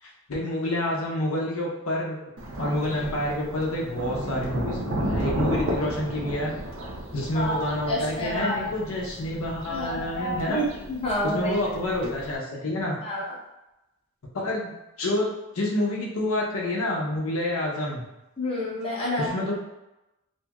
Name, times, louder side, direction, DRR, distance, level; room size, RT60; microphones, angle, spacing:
voice 1, 0.0-2.2 2.6-6.5 7.1-10.6 11.2-13.0 14.3-14.7 15.0-18.0 19.2-19.5, left 1 dB, 75° left, -3 dB, 0.6 m, -28 dB
Thunder, 2.4-12.4, right 1 dB, 65° right, 0.5 m, -33 dB
voice 2, 7.3-8.7 9.7-11.6 13.0-13.2 18.4-19.3, equal, 25° left, -6 dB, 0.6 m, -29 dB
2.8 x 2.6 x 2.3 m, 0.96 s
head